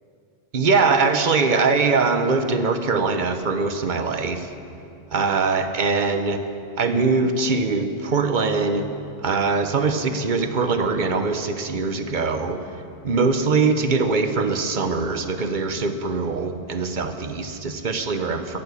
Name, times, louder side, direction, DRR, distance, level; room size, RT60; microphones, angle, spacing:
voice 1, 0.5-4.5 5.1-6.4 6.8-8.9 9.2-12.6 13.0-18.6, right 4 dB, 45° right, 8 dB, 1.0 m, -22 dB
16.5 x 11.0 x 7.0 m, 2.7 s
omnidirectional pair, 1.1 m